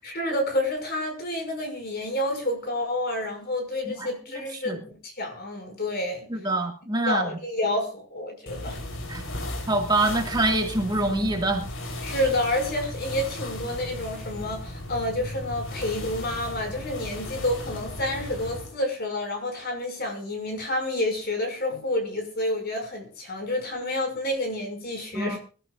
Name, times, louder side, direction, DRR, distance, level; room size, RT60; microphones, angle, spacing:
voice 1, 0.0-6.3 7.0-8.8 12.0-25.4, left 1 dB, 45° left, 5.8 m, -29 dB
voice 2, 6.3-7.3 9.1-9.2 9.7-11.6 25.1-25.4, right 2 dB, 20° right, 2.0 m, -25 dB
sound 1, 8.5-18.8, left 1 dB, 65° left, 3.7 m, -36 dB
25.0 x 13.0 x 2.5 m
head